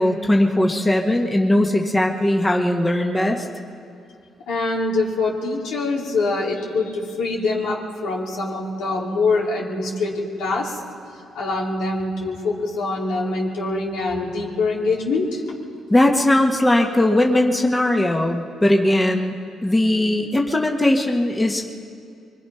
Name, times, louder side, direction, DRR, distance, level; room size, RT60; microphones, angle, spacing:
voice 1, 0.0-3.4 15.9-19.3 19.6-21.7, left 1 dB, 15° left, 1 dB, 1.7 m, -19 dB
voice 2, 4.5-10.8 11.3-15.4, left 3 dB, 85° left, -4 dB, 3.9 m, -24 dB
24.5 x 23.0 x 5.8 m, 2.5 s
cardioid pair, 90°, 0 cm